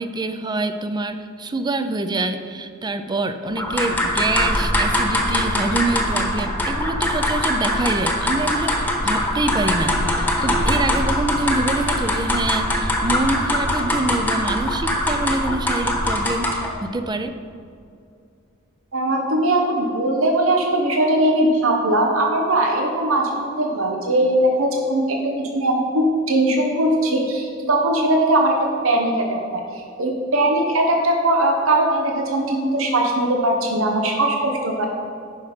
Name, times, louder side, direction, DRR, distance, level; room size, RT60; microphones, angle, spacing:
voice 1, 0.0-17.3, right 2 dB, 20° right, 10 dB, 0.4 m, -25 dB
sound 1, 3.6-16.8, left 1 dB, 10° left, 1.1 m, -22 dB
voice 2, 18.9-34.9, right 1 dB, 85° right, 2 dB, 1.0 m, -20 dB
9.8 x 5.8 x 5.0 m, 2.4 s
head